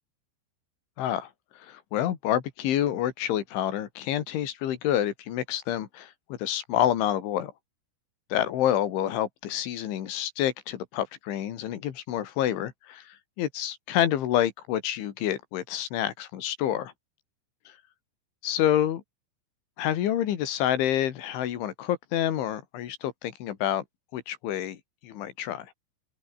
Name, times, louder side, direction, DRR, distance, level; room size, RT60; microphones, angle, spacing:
voice 1, 1.0-7.5 8.3-16.9 17.7-17.8 18.4-19.0 19.8-23.9 24.1-24.8 25.0-25.7, left 11 dB, 80° left, 4.7 m, -28 dB
open air
omnidirectional pair, 5.4 m